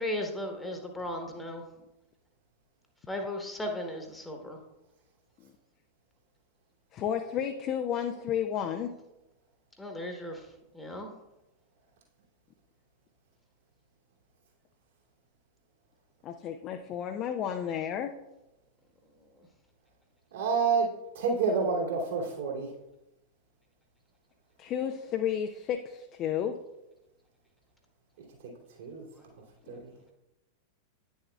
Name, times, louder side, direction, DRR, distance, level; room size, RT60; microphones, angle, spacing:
voice 1, 0.0-1.6 3.1-4.6 9.8-10.4 10.7-11.1, left 1 dB, 5° left, 2 dB, 1.2 m, -36 dB
voice 2, 6.9-8.9 16.2-18.1 24.6-26.6, left 9 dB, 35° left, 6 dB, 0.5 m, -32 dB
voice 3, 20.3-20.9 21.1-22.7 28.4-28.5 28.8-29.0 29.7-29.9, right 5 dB, 60° right, -3 dB, 2.5 m, -28 dB
9.8 x 7.1 x 2.3 m, 0.94 s
figure-of-eight pair, 90°, 0 cm